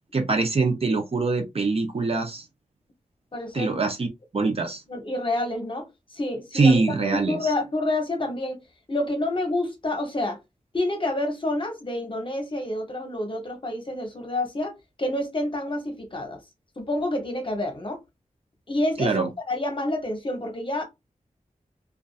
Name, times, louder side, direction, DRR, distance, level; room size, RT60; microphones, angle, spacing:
voice 1, 0.1-2.4 3.5-4.1 4.3-4.8 6.5-7.5 19.0-19.3, right 3 dB, 45° right, 0.6 m, -23 dB
voice 2, 3.3-3.8 4.4-4.5 4.9-8.6 8.9-10.4 10.7-14.7 15.0-16.4 16.8-18.0 18.7-20.8, left 1 dB, 40° left, 0.8 m, -28 dB
2.5 x 2.3 x 2.3 m
wide cardioid pair, 85°, 13 cm